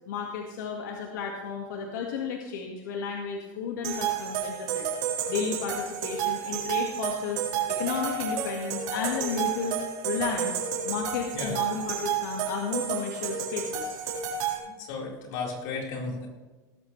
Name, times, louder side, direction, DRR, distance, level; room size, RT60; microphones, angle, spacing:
voice 1, 0.1-4.9 5.3-7.4 7.7-9.8 10.0-10.6 10.8-14.0, left 6 dB, 90° left, 1 dB, 1.8 m, -33 dB
sound 1, 3.8-14.6, right 7 dB, 50° right, 4.0 m, -31 dB
voice 2, 14.6-16.3, left 4 dB, 60° left, -1 dB, 4.3 m, -34 dB
18.0 x 14.0 x 3.3 m, 1.2 s
supercardioid pair, 150°, 10 cm